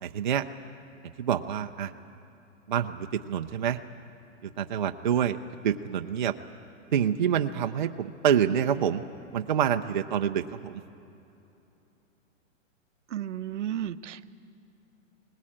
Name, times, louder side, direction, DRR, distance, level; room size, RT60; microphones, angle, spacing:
voice 1, 0.0-0.4 1.2-1.9 2.7-3.8 4.4-5.4 5.6-6.3 6.9-9.0 9.3-10.8, right 9 dB, 40° right, 6 dB, 0.5 m, -27 dB
voice 2, 13.1-14.4, right 11 dB, 70° right, 13 dB, 0.8 m, -33 dB
20.0 x 19.5 x 8.6 m, 2.9 s
hypercardioid pair, 180°, 38 cm